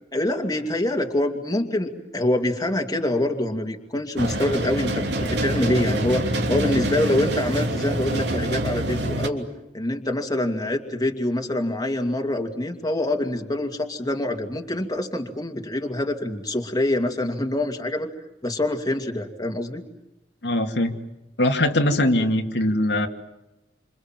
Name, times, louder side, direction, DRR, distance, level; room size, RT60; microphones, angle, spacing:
voice 1, 0.1-6.2 6.5-9.4 9.7-18.1 18.4-19.8, left 1 dB, 20° left, 3 dB, 2.6 m, -25 dB
sound 1, 4.2-9.3, right 1 dB, 70° right, 3.1 m, -25 dB
voice 2, 20.4-20.9 21.4-23.1, left 1 dB, 75° left, 3 dB, 2.4 m, -21 dB
28.0 x 27.0 x 7.6 m, 0.92 s
head